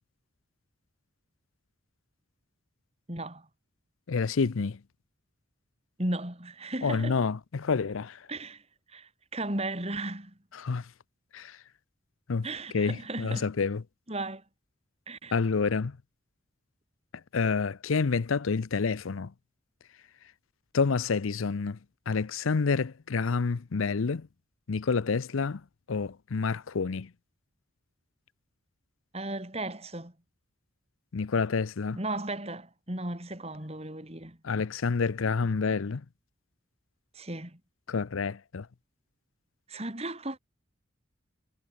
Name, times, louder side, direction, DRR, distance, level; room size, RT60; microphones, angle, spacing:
voice 1, 3.1-3.5 6.0-7.2 8.3-8.6 8.9-10.3 12.4-13.5 14.1-14.4 15.1-15.4 29.1-30.1 32.0-34.4 37.1-37.6 39.7-40.4, right 2 dB, 30° right, 3.8 m, -35 dB
voice 2, 4.1-4.8 6.8-8.2 10.6-10.9 11.3-11.6 12.3-12.5 12.7-13.8 15.3-16.0 17.3-19.3 20.7-21.8 22.1-24.3 24.7-25.6 25.9-27.1 31.1-32.0 34.4-36.0 37.9-38.7, left 4 dB, 85° left, 0.6 m, -28 dB
head